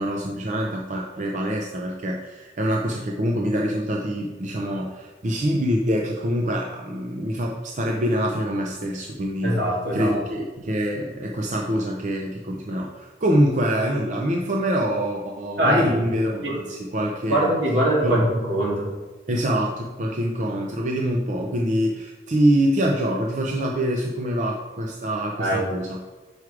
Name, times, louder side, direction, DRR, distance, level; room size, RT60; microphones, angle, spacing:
voice 1, 0.0-9.6 9.9-17.5 18.0-18.2 19.3-26.0, equal, 45° right, 0 dB, 0.6 m, -25 dB
voice 2, 9.4-10.1 15.6-16.0 16.4-16.6 17.3-18.9 25.3-25.7, right 1 dB, 75° right, -3 dB, 2.1 m, -22 dB
6.1 x 4.8 x 4.8 m, 1.2 s
head